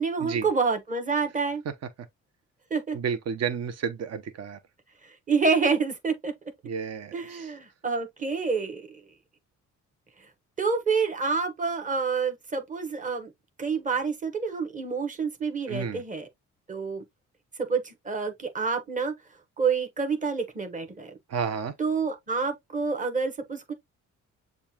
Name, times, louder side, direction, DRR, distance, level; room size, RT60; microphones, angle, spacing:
voice 1, 0.0-1.6 2.7-3.0 5.3-6.3 7.1-8.8 10.6-13.3 13.6-16.3 16.7-17.0 17.7-19.1 19.6-21.1 21.8-23.7, right 5 dB, 25° right, 1.3 m, -28 dB
voice 2, 2.9-4.6 6.6-7.5 15.7-16.0 21.3-21.7, right 6 dB, 60° right, 0.9 m, -31 dB
6.9 x 2.4 x 2.9 m
cardioid pair, 90°, 30 cm